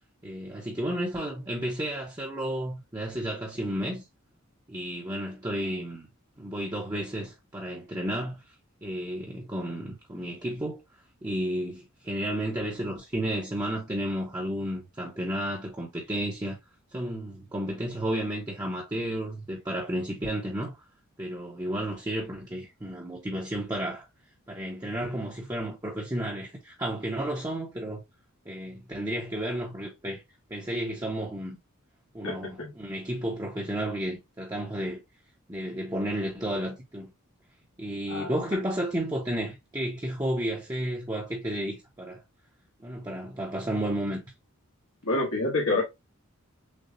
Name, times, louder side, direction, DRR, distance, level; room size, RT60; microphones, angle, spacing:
voice 1, 0.2-4.0 4.7-6.1 6.4-8.4 8.8-10.8 11.2-16.6 16.9-20.8 21.2-24.1 24.5-28.0 28.4-30.2 30.5-31.6 32.1-35.0 35.5-37.1 37.8-42.2 42.8-44.2, right 1 dB, 15° right, 0.8 m, -32 dB
voice 2, 32.2-32.7 38.1-38.3 45.0-45.8, left 2 dB, 75° left, 1.4 m, -27 dB
6.6 x 2.3 x 2.7 m
head